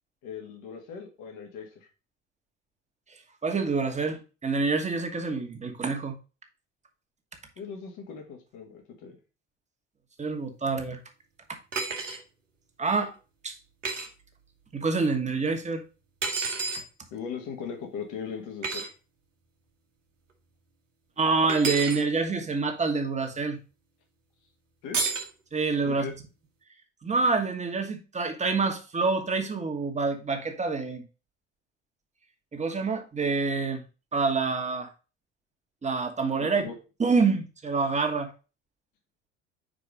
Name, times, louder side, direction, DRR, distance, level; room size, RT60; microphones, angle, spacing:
voice 1, 0.2-1.9 7.6-9.2 17.1-18.9 24.8-25.0 25.8-26.1 36.4-36.7, left 6 dB, 55° left, 2.0 m, -39 dB
voice 2, 3.4-6.2 10.2-11.0 12.8-13.1 13.4-13.5 14.7-15.8 21.2-23.6 25.5-26.1 27.0-31.0 32.5-33.8 34.1-34.9 35.8-36.7 37.0-38.3, right 4 dB, 20° right, 1.4 m, -27 dB
sound 1, 11.7-12.2 13.8-14.1 16.2-16.8 18.6-18.9 21.5-22.0 24.9-25.3, right 4 dB, 85° right, 1.0 m, -30 dB
5.0 x 4.6 x 5.1 m
figure-of-eight pair, 60°, 36 cm